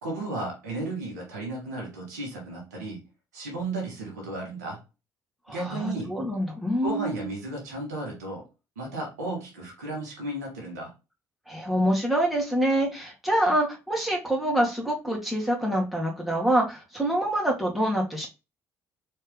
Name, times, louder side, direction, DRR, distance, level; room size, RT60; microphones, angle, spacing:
voice 1, 0.0-3.1 3.3-4.8 5.5-6.2 6.8-8.5 8.7-10.9, right 2 dB, 85° right, 1.7 m, -34 dB
voice 2, 5.5-7.3 11.5-18.3, right 1 dB, ahead, 2.0 m, -26 dB
4.3 x 3.2 x 3.5 m
hypercardioid pair, 50°, 9 cm